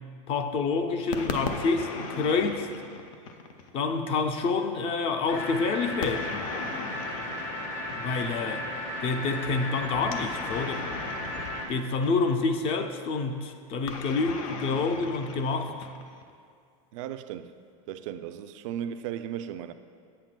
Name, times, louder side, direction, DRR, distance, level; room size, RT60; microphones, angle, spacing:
voice 1, 0.3-2.7 3.7-6.4 7.9-8.7 9.0-10.9 11.7-15.8, left 4 dB, 35° left, 7 dB, 0.4 m, -28 dB
sound 1, 1.1-3.8 6.0-8.4 10.0-12.5 13.9-16.3, left 4 dB, 85° left, 0.7 m, -38 dB
sound 2, 5.3-11.6, left 1 dB, 60° left, 1.1 m, -35 dB
voice 2, 16.9-17.5 17.9-19.7, right 10 dB, 70° right, 10 dB, 0.4 m, -36 dB
8.2 x 7.5 x 2.2 m, 2.3 s
supercardioid pair, 140°, 17 cm